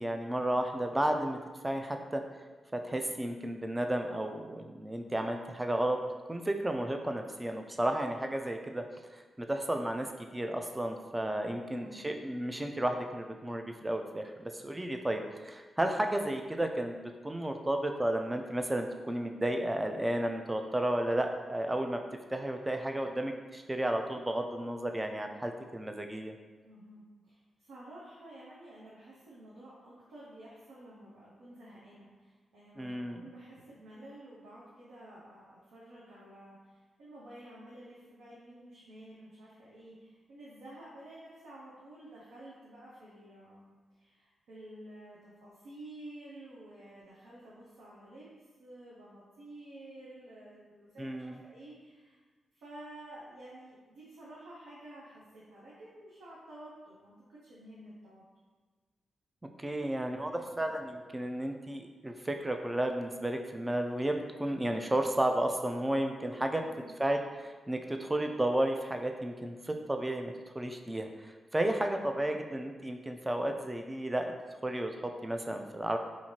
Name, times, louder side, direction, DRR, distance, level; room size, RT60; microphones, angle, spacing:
voice 1, 0.0-1.4 1.6-2.2 2.7-8.8 9.4-10.1 10.3-22.0 22.3-26.3 32.8-33.3 51.0-51.4 59.6-66.6 67.0-71.1 71.5-74.3 74.6-76.0, right 1 dB, 20° right, 4 dB, 0.4 m, -33 dB
voice 2, 11.7-12.1 26.6-48.3 48.6-52.2 52.5-58.2 66.6-67.0 72.1-72.4, right 1 dB, 80° right, -8 dB, 0.6 m, -51 dB
2.6 x 2.5 x 3.0 m, 1.3 s
supercardioid pair, 40°, 0 cm